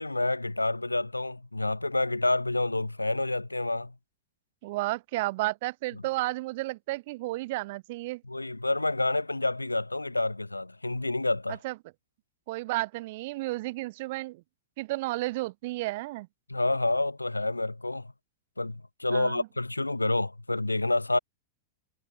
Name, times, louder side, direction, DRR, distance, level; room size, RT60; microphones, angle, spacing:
voice 1, 0.0-3.9 8.3-11.6 16.5-18.1 18.6-21.2, left 2 dB, 85° left, 5.1 m, -28 dB
voice 2, 4.6-8.2 11.5-11.8 12.5-14.4 14.8-16.3 19.1-19.5, right 20 dB, 50° right, 5.4 m, -32 dB
figure-of-eight pair, 95°, 0 cm